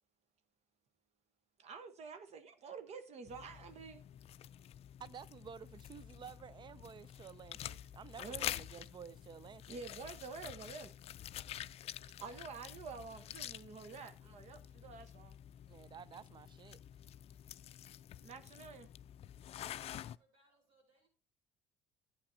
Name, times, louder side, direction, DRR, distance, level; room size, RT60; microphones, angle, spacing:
voice 1, 1.6-4.0 8.2-8.5 9.7-10.9 12.2-15.4 18.2-18.9, right 5 dB, 55° right, 1.1 m, -49 dB
sound 1, 3.3-20.2, left 11 dB, 50° left, 0.4 m, -48 dB
voice 2, 5.0-9.7 15.7-16.8, right 7 dB, 35° right, 0.5 m, -52 dB
voice 3, 20.1-21.1, right 2 dB, 75° right, 4.6 m, -72 dB
11.5 x 8.9 x 2.8 m
hypercardioid pair, 60°, 13 cm